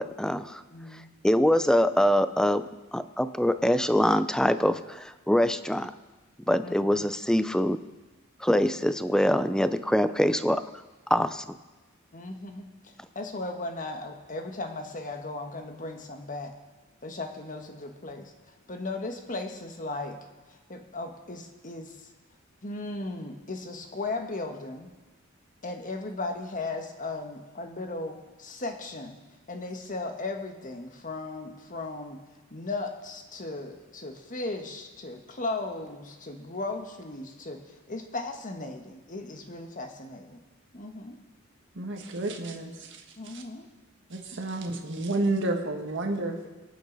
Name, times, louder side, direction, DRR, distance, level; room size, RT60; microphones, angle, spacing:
voice 1, 0.0-0.6 1.2-2.6 2.9-5.9 6.5-7.8 8.4-10.6 11.1-11.5, equal, 5° left, 12 dB, 0.5 m, -24 dB
voice 2, 0.7-1.1 6.6-7.1 12.1-16.5 17.0-18.3 18.7-20.2 20.5-21.9 22.6-24.9 25.6-29.2 29.5-32.2 32.5-37.6 37.9-40.4 40.7-41.2 43.2-43.7 46.4-46.5, left 2 dB, 40° left, 5 dB, 1.4 m, -36 dB
voice 3, 41.7-43.4 44.1-46.5, right 2 dB, 60° right, 2 dB, 1.6 m, -31 dB
24.5 x 9.2 x 4.0 m, 1.2 s
head